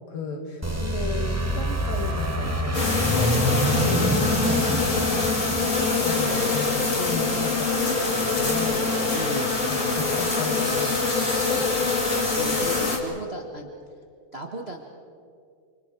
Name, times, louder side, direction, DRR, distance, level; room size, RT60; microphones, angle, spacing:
voice 1, 0.1-8.8 9.2-9.4 9.7-11.9, left 4 dB, 85° left, 3 dB, 4.1 m, -34 dB
sound 1, 0.6-7.2, right 1 dB, 15° right, 0.5 m, -27 dB
sound 2, 2.7-13.0, left 3 dB, 25° left, 2.6 m, -24 dB
voice 2, 3.9-4.2 9.1-9.5 12.4-13.7 14.3-14.8, right 2 dB, 55° right, 2 dB, 0.7 m, -35 dB
30.0 x 26.5 x 4.7 m, 2.4 s
omnidirectional pair, 3.9 m